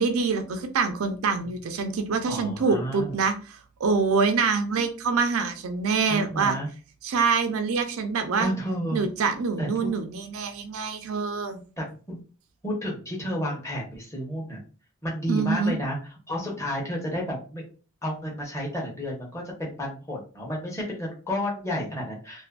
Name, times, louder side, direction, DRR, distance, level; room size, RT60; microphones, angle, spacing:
voice 1, 0.0-6.6 7.0-8.5 8.9-11.6 15.3-15.8, right 4 dB, 85° right, 7 dB, 0.4 m, -25 dB
voice 2, 2.3-3.2 6.1-6.7 8.4-9.0 9.6-9.9 11.8-12.2 12.6-14.6 15.0-16.0 16.3-17.6 18.0-22.5, equal, 15° left, -3 dB, 0.7 m, -31 dB
2.6 x 2.4 x 2.2 m, 0.36 s
head